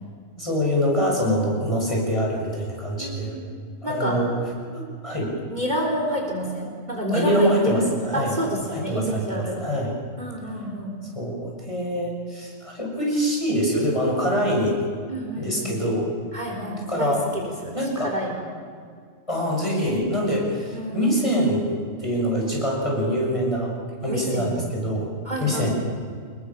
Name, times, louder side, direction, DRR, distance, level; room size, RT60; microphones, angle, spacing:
voice 1, 0.4-3.4 3.8-4.3 4.7-5.3 7.1-8.3 8.7-9.9 11.1-14.9 15.4-16.1 16.9-17.2 17.7-18.2 19.3-21.7 22.0-23.7 24.0-25.1 25.4-25.7, equal, 25° left, -2 dB, 7.2 m, -24 dB
voice 2, 3.0-3.4 3.8-4.2 5.5-9.6 10.2-10.9 15.1-15.7 16.3-18.5 20.7-21.0 24.1-24.5 25.2-25.7, right 1 dB, 35° right, 0 dB, 4.2 m, -29 dB
26.5 x 22.0 x 7.4 m, 2.1 s
omnidirectional pair, 1.4 m